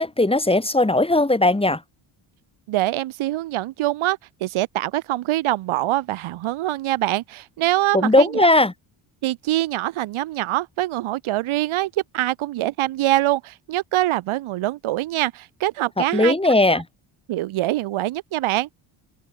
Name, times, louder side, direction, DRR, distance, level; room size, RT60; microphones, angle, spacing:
voice 1, 0.0-1.8 7.9-8.7 16.0-16.8, left 2 dB, 10° left, 4.0 m, -18 dB
voice 2, 2.7-8.5 9.2-16.3 17.3-18.7, right 16 dB, 85° right, 3.1 m, -24 dB
cardioid pair, 95°, 47 cm